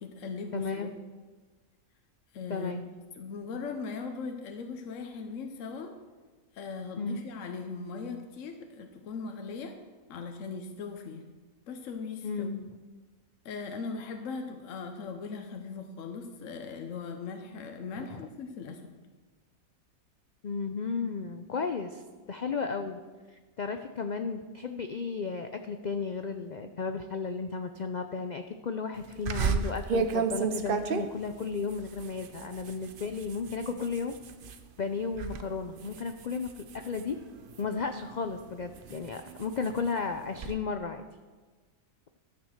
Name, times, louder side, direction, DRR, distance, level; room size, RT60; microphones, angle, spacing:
voice 1, 0.0-0.9 2.3-2.8 3.2-6.0 6.5-9.8 10.1-11.3 11.7-12.5 13.4-18.9, left 4 dB, 65° left, 5 dB, 1.1 m, -39 dB
voice 2, 0.5-0.9 2.5-2.8 7.0-7.2 12.2-12.7 18.0-18.2 20.4-22.0 22.3-23.0 23.6-34.2 34.8-37.2 37.6-41.0, left 5 dB, 80° left, 7 dB, 0.4 m, -34 dB
sound 1, 29.3-34.6 35.0-35.4 35.8-37.8 38.4-40.5, right 5 dB, 55° right, 0.7 m, -33 dB
12.5 x 6.0 x 6.5 m, 1.3 s
omnidirectional pair, 1.5 m